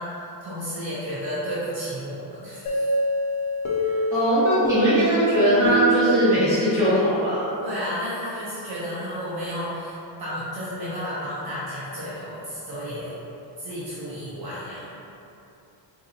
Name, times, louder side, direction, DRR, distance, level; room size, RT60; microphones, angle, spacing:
voice 1, 0.0-2.9 3.8-4.0 7.6-13.1 13.6-15.0, equal, 50° right, -9 dB, 0.7 m, -32 dB
sound 1, 2.7-7.3, right 1 dB, 85° left, 0.8 m, -26 dB
voice 2, 4.1-7.5, equal, 5° right, -15 dB, 1.5 m, -20 dB
4.0 x 2.6 x 2.7 m, 2.9 s
cardioid pair, 175°, 47 cm